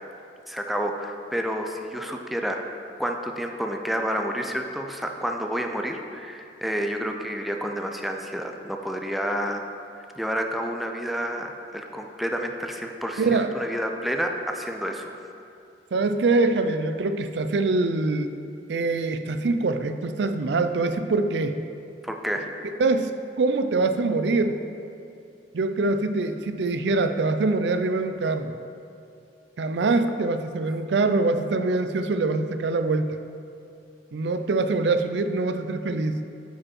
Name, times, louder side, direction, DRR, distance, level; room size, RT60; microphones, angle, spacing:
voice 1, 0.5-2.7 3.0-9.6 10.2-15.1 22.0-22.5, equal, ahead, 2 dB, 0.4 m, -29 dB
voice 2, 13.2-13.5 15.9-18.3 18.7-21.5 22.8-23.1 23.4-24.6 25.5-28.5 29.6-33.2 34.1-36.2, right 3 dB, 75° right, 8 dB, 0.4 m, -24 dB
9.1 x 5.1 x 4.3 m, 2.6 s
head